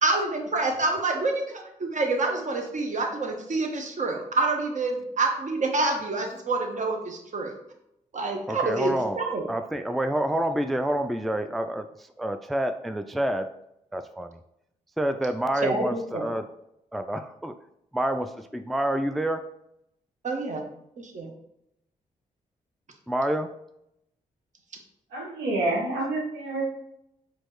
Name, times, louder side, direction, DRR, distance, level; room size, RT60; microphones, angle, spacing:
voice 1, 0.0-7.5 8.1-9.5 15.6-16.3 20.2-20.6 21.0-21.3, right 3 dB, 45° right, 3 dB, 0.9 m, -27 dB
voice 2, 8.5-9.2 9.5-13.5 13.9-14.4 15.0-16.5 16.9-17.5 17.9-19.5 23.1-23.6, right 1 dB, ahead, 8 dB, 0.3 m, -28 dB
voice 3, 25.1-26.9, right 2 dB, 90° right, -2 dB, 0.9 m, -28 dB
4.3 x 2.6 x 3.0 m, 0.78 s
hypercardioid pair, 40°, 17 cm